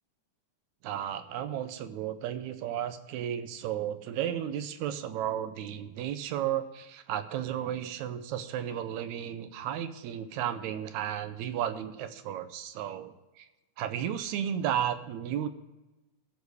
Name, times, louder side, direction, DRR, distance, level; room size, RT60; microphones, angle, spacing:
voice 1, 0.8-13.5 13.8-15.5, right 10 dB, 80° right, 11 dB, 1.9 m, -33 dB
14.5 x 5.2 x 4.7 m, 1.1 s
omnidirectional pair, 3.6 m